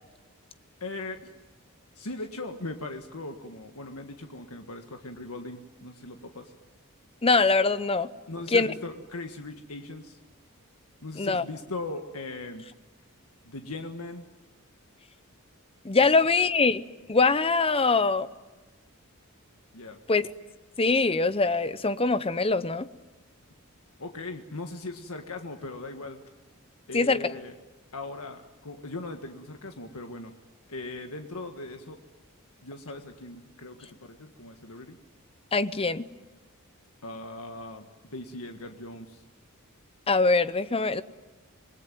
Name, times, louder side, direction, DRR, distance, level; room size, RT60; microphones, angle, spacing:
voice 1, 0.8-1.3 1.9-6.5 8.3-10.2 11.0-12.6 13.4-14.2 19.7-20.0 24.0-26.2 26.9-27.6 27.9-30.3 30.7-32.0 32.6-35.0 37.0-39.2, left 2 dB, 80° left, 5 dB, 1.7 m, -39 dB
voice 2, 7.2-8.1 8.5-8.7 11.2-11.4 15.8-16.8 17.1-18.3 20.1-20.2 20.8-22.9 26.9-27.3 35.5-36.1 40.1-41.0, left 3 dB, 25° left, 14 dB, 0.8 m, -23 dB
27.5 x 21.0 x 9.3 m, 1.2 s
head